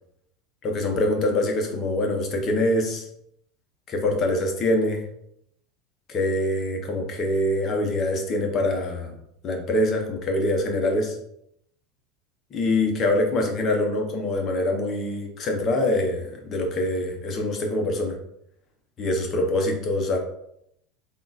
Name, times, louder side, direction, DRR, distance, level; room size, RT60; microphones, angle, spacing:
voice 1, 0.6-3.1 3.9-5.0 6.1-9.1 9.4-11.2 12.5-18.2 19.0-20.2, left 1 dB, 35° left, 2 dB, 0.8 m, -24 dB
3.6 x 2.4 x 4.0 m, 0.75 s
supercardioid pair, 140°, 0 cm